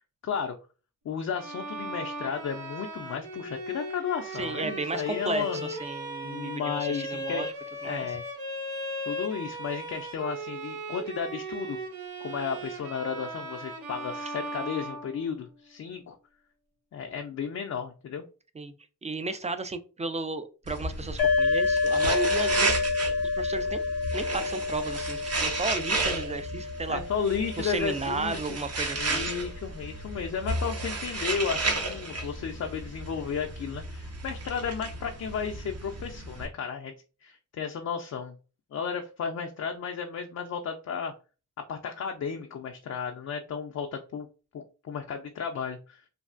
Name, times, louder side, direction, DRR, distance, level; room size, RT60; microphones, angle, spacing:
voice 1, 0.2-0.6 1.0-5.6 6.2-7.5 7.8-8.3 9.1-11.8 12.2-16.2 16.9-18.2 26.9-28.4 28.9-36.9 37.2-38.4 38.7-41.1 41.6-44.3 44.5-46.1, left 6 dB, 50° left, 3 dB, 0.4 m, -33 dB
Bowed string instrument, 1.3-15.6, right 1 dB, 90° right, 0.8 m, -37 dB
voice 2, 4.3-7.5 7.8-8.2 18.5-18.7 19.0-22.8 23.3-23.8 24.1-27.0 27.6-29.3, right 3 dB, 20° right, 11 dB, 0.3 m, -34 dB
sound 1, 20.7-36.5, right 2 dB, 45° right, 0.8 m, -33 dB
sound 2, 21.2-28.7, left 4 dB, 90° left, 0.6 m, -29 dB
3.2 x 2.3 x 2.4 m, 0.35 s
cardioid pair, 50°, 35 cm